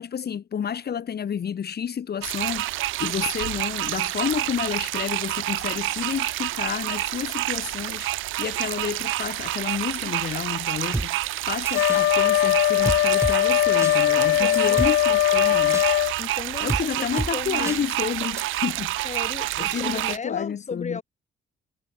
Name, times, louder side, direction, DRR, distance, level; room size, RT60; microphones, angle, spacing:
voice 1, 0.0-2.7 3.0-8.1 8.4-15.9 16.6-18.9 19.6-21.0, left 8 dB, 55° left, 4.6 m, -30 dB
sound 1, 2.2-20.2, right 17 dB, 90° right, 1.1 m, -28 dB
sound 2, 10.9-11.1 11.7-12.0 12.9-13.4 13.8-13.9 14.5-14.9 15.7-15.9 16.7-16.8 17.2-17.3 17.7-17.8 18.4-18.5, right 2 dB, 15° right, 2.1 m, -28 dB
Wind instrument woodwind instrument, 11.7-16.2, left 14 dB, 80° left, 1.0 m, -20 dB
voice 2, 14.2-14.9 16.2-17.9 19.0-21.0, left 5 dB, 35° left, 6.6 m, -36 dB
cardioid pair, 90°, 20 cm